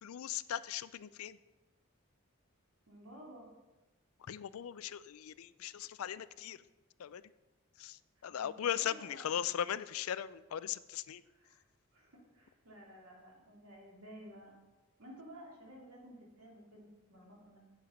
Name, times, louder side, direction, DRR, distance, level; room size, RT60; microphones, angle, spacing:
voice 1, 0.0-1.4 4.3-6.6 7.0-7.2 7.8-11.2, left 9 dB, 85° left, 16 dB, 0.4 m, -38 dB
voice 2, 2.9-3.5 8.3-9.4 11.2-11.6 11.9-14.5 15.0-17.6, equal, 90° right, -2 dB, 3.0 m, -54 dB
8.8 x 7.1 x 5.1 m, 1.1 s
head